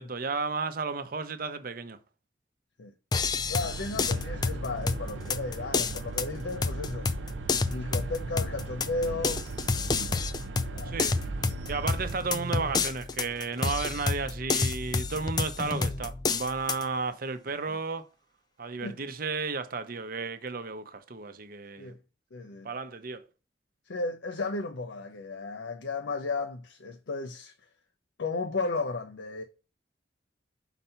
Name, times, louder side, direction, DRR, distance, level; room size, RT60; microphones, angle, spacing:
voice 1, 0.0-2.0 10.8-11.2 11.7-18.1 18.6-21.9 22.6-23.2, right 4 dB, 50° right, 0.7 m, -33 dB
sound 1, 3.1-16.8, left 4 dB, 20° left, 0.3 m, -30 dB
voice 2, 3.5-7.1 7.7-9.5 10.7-11.1 17.7-17.8 18.8-19.0 21.8-22.0 22.3-22.7 23.9-27.5 28.2-29.4, left 3 dB, 80° left, 0.6 m, -34 dB
sound 2, 3.6-12.2, right 4 dB, 85° right, 0.4 m, -39 dB
5.6 x 4.1 x 5.6 m
head